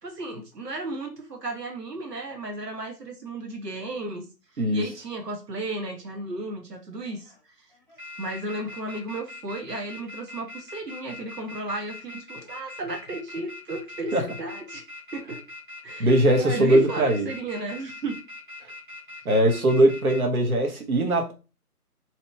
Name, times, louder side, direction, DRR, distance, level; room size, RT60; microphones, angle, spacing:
voice 1, 0.0-4.3 4.5-7.7 8.2-14.8 15.1-15.4 15.8-18.2, right 2 dB, 90° right, 3 dB, 1.0 m, -34 dB
sound 1, 4.9-5.3 5.9-6.6 7.0-7.4 7.7-20.2, left 2 dB, 30° right, 1.1 m, -42 dB
voice 2, 16.0-17.3 19.2-21.3, right 1 dB, 65° right, 3 dB, 1.1 m, -20 dB
2.9 x 2.7 x 3.2 m, 0.31 s
figure-of-eight pair, 175°, 47 cm